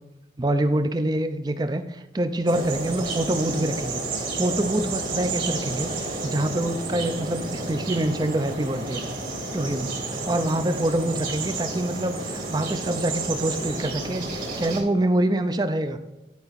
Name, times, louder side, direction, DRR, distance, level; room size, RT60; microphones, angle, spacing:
voice 1, 0.4-9.0 9.5-9.9 10.2-16.0, right 1 dB, 25° right, 9 dB, 0.5 m, -26 dB
sound 1, 2.5-14.8, right 3 dB, 50° right, 2.0 m, -31 dB
10.5 x 4.8 x 4.1 m, 1.1 s
head